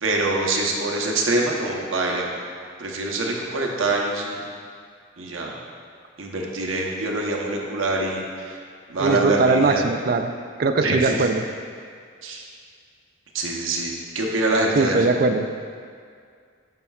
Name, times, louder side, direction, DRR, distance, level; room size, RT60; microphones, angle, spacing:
voice 1, 0.0-2.3 2.8-4.4 5.2-5.5 6.2-8.6 8.9-9.8 10.8-11.3 12.2-12.4 13.3-15.0, right 2 dB, 90° right, -1 dB, 0.9 m, -25 dB
voice 2, 9.0-10.3 10.6-11.4 14.7-15.5, right 3 dB, 50° right, 7 dB, 0.4 m, -20 dB
9.5 x 5.7 x 2.4 m, 2.1 s
head